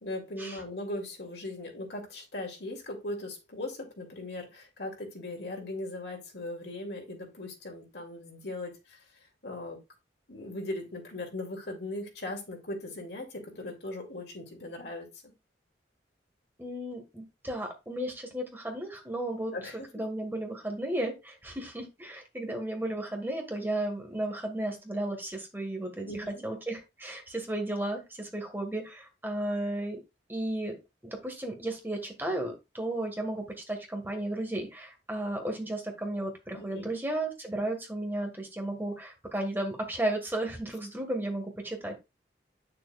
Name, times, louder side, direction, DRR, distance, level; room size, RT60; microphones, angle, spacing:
voice 1, 0.0-9.0 9.4-9.8 10.3-15.1 19.5-19.9 26.1-26.4 36.5-36.9, left 1 dB, 65° left, 2.5 m, -39 dB
voice 2, 16.6-30.0 30.3-30.8 31.0-41.9, right 1 dB, 10° right, 1.6 m, -34 dB
9.2 x 6.7 x 2.4 m
head